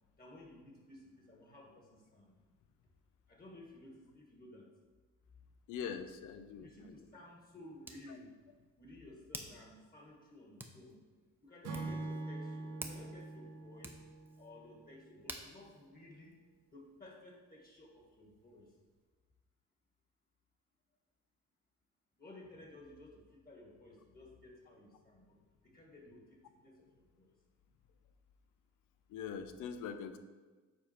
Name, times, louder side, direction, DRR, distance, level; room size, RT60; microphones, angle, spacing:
voice 1, 0.2-2.3 3.3-4.7 6.6-8.3 8.8-11.0 11.4-14.0 14.4-16.3 16.7-18.7 22.2-25.4 25.6-27.3, left 2 dB, 30° left, -1 dB, 1.8 m, -55 dB
voice 2, 5.7-6.9 29.1-30.2, left 7 dB, 85° left, 10 dB, 0.6 m, -43 dB
Hands, 6.2-17.0, right 1 dB, 5° right, 0.7 m, -53 dB
Acoustic guitar / Strum, 11.6-15.1, right 2 dB, 85° right, 1.2 m, -44 dB
7.4 x 4.2 x 4.5 m, 1.4 s
cardioid pair, 90°, 30 cm